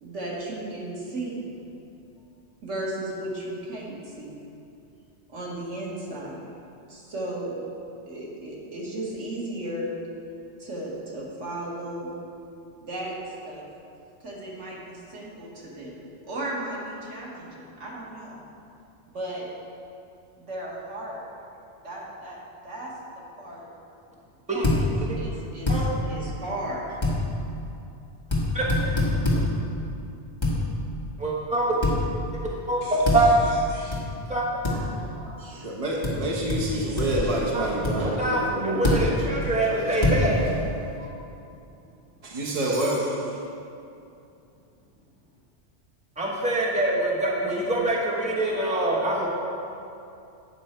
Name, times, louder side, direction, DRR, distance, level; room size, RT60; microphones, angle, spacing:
voice 1, 0.0-1.5 2.6-4.3 5.3-6.5 6.9-7.6 8.1-9.9 10.6-12.1 12.8-13.7 14.2-18.4 19.1-19.5 20.4-21.2 21.8-22.4 22.6-23.7 24.5-24.8 25.2-25.7 26.0-27.0, right 1 dB, 80° right, -5 dB, 1.9 m, -35 dB
sound 1, 24.6-24.8 25.7-25.8 27.0-27.2 28.3-28.4 28.7-29.4 30.4-30.6 31.8-32.0 33.0-33.2 33.9-34.0 34.6-34.8 36.0-36.1 36.5-36.6 37.0-37.3 37.8-37.9 38.8-39.0 40.0-40.2, left 2 dB, 25° left, 1.6 m, -23 dB
voice 2, 31.2-31.7 32.7-33.3 34.3-34.4 37.5-37.7 38.0-40.4 46.2-49.3, right 2 dB, 5° right, -4 dB, 1.1 m, -25 dB
voice 3, 34.7-39.1 39.4-40.5 41.0-41.1 42.2-43.3, right 1 dB, 30° right, -3 dB, 1.1 m, -29 dB
9.2 x 6.2 x 4.4 m, 2.7 s
omnidirectional pair, 1.2 m